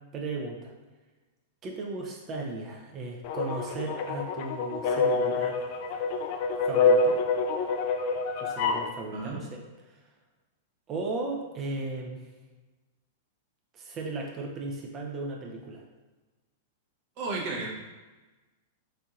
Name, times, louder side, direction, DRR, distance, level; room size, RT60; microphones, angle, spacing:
voice 1, 0.1-0.7 1.6-5.6 6.6-7.2 8.4-9.6 9.9-10.0 10.9-12.2 13.7-15.8, right 3 dB, 30° right, 0 dB, 0.5 m, -36 dB
sound 1, 3.2-8.9, left 4 dB, 50° left, 0.3 m, -26 dB
voice 2, 17.2-17.7, right 3 dB, 50° right, -2 dB, 0.9 m, -33 dB
4.3 x 2.7 x 2.4 m, 1.2 s
figure-of-eight pair, 100°, 0 cm